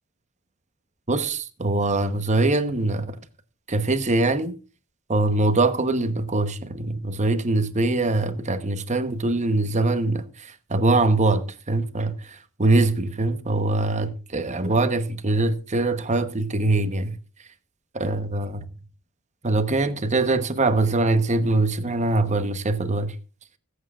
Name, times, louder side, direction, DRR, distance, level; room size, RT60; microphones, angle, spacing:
voice 1, 1.1-3.2 3.7-4.5 5.1-17.1 17.9-18.6 19.4-23.1, right 2 dB, 35° right, 1.0 m, -23 dB
24.5 x 8.2 x 2.4 m
head